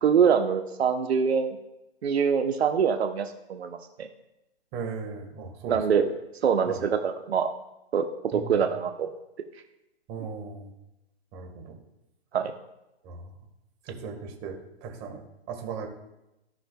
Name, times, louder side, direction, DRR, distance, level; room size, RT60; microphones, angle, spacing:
voice 1, 0.0-1.6 2.0-4.1 5.7-6.2 6.4-7.5 7.9-8.0 8.3-9.1 12.3-12.5, right 7 dB, 70° right, 5 dB, 0.9 m, -24 dB
voice 2, 4.7-5.8 6.7-6.8 8.3-8.6 10.1-10.7 11.3-11.8 13.0-13.3 13.9-15.9, right 5 dB, 25° right, 1 dB, 1.5 m, -37 dB
15.5 x 5.6 x 2.3 m, 0.92 s
hypercardioid pair, 145°, 32 cm